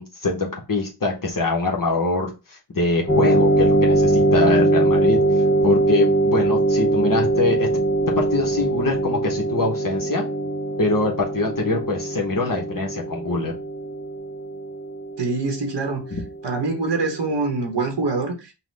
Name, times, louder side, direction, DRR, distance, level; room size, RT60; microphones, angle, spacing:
voice 1, 0.0-5.2 5.6-7.7 8.2-10.3 10.8-13.5 16.1-16.2, left 3 dB, 50° left, 1.0 m, -24 dB
sound 1, 3.1-16.2, right 2 dB, 25° left, 0.7 m, -21 dB
voice 2, 15.2-16.2 16.4-18.5, right 3 dB, 85° right, 1.1 m, -25 dB
5.7 x 2.1 x 3.2 m
wide cardioid pair, 85°, 41 cm